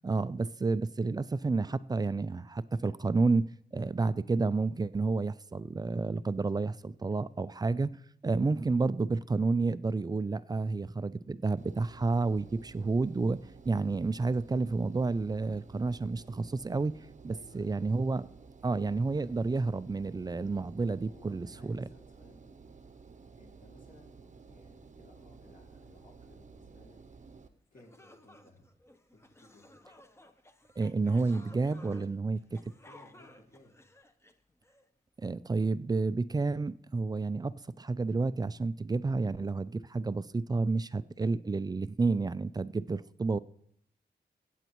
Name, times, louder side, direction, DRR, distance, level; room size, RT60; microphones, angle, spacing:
voice 1, 0.0-7.9 8.2-17.0 17.2-18.3 18.6-21.9 30.8-32.6 35.2-43.4, right 3 dB, 25° right, 0.4 m, -30 dB
Engine, 11.6-27.5, right 5 dB, 45° right, 0.7 m, -53 dB
voice 2, 17.3-17.8 20.8-22.5 23.4-27.2 27.7-28.7 29.1-29.8 32.6-33.8, left 1 dB, 50° left, 2.6 m, -59 dB
sound 1, 27.4-27.5 27.7-34.8, left 1 dB, 15° left, 0.8 m, -56 dB
24.0 x 8.0 x 3.0 m
wide cardioid pair, 100°, 17 cm